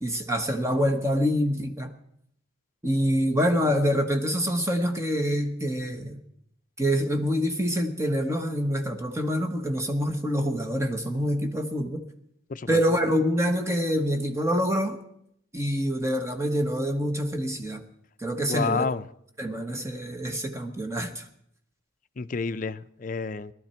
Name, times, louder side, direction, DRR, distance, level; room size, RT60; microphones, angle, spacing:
voice 1, 0.0-1.9 2.8-6.2 6.8-12.0 12.7-15.0 15.5-17.8 18.2-18.9 19.4-21.2, equal, 15° right, 5 dB, 1.2 m, -26 dB
voice 2, 18.5-19.0 22.2-23.5, left 4 dB, 40° left, 12 dB, 0.5 m, -29 dB
18.5 x 12.0 x 4.4 m, 0.72 s
head